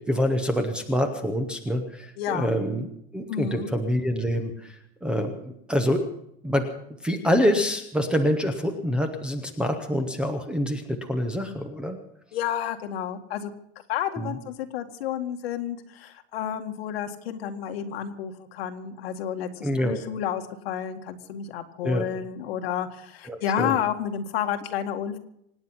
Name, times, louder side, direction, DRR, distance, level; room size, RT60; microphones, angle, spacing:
voice 1, 0.1-2.9 3.1-4.7 5.0-5.3 5.7-6.0 6.4-6.6 7.0-12.0 14.2-14.3 19.6-20.0 21.8-22.0 23.3-23.7, equal, 5° right, 7 dB, 0.7 m, -26 dB
voice 2, 2.2-2.5 3.3-3.7 12.3-13.5 13.9-25.2, left 9 dB, 65° left, 5 dB, 1.9 m, -30 dB
25.5 x 9.6 x 5.7 m, 0.76 s
supercardioid pair, 180°, 32 cm